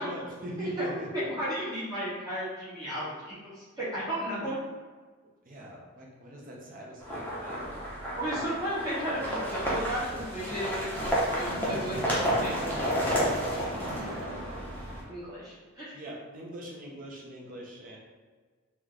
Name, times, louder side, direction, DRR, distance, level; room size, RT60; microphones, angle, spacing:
voice 1, 0.0-1.2 5.4-7.7 8.0-8.4 15.9-18.0, right 1 dB, 40° right, -2 dB, 0.7 m, -41 dB
voice 2, 1.3-4.6 8.1-14.2 15.1-15.9, equal, 15° right, -10 dB, 1.1 m, -35 dB
sound 1, 7.0-15.0, equal, 10° left, 0.6 m, -31 dB
Splash splatter, 11.2-15.3, right 1 dB, 80° right, 0.4 m, -40 dB
3.2 x 2.2 x 3.8 m, 1.4 s
head